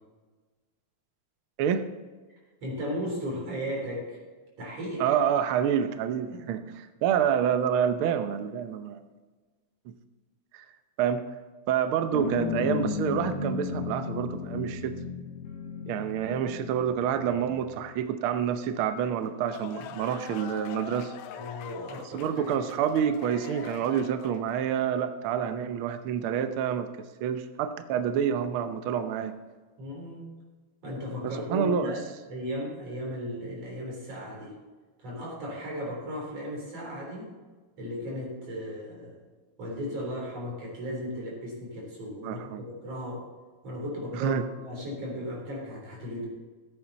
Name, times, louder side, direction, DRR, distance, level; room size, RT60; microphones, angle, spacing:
voice 1, 1.6-1.9 5.0-9.0 10.5-10.6 11.0-11.2 11.7-14.9 15.9-21.1 22.1-26.9 27.2-29.3 31.5-31.9 42.2-42.6 44.1-44.4, right 8 dB, 80° right, 9 dB, 1.1 m, -28 dB
voice 2, 2.6-4.2 4.6-5.2 6.3-6.5 21.3-22.5 29.8-30.3 30.8-34.6 35.0-37.3 37.8-39.2 39.6-43.2 43.6-46.3, equal, 55° right, -2 dB, 4.8 m, -36 dB
sound 1, 12.1-17.9, left 5 dB, 55° left, 2.5 m, -35 dB
sound 2, 19.2-24.6, left 9 dB, 85° left, 2.1 m, -43 dB
15.0 x 8.7 x 4.1 m, 1.3 s
omnidirectional pair, 3.4 m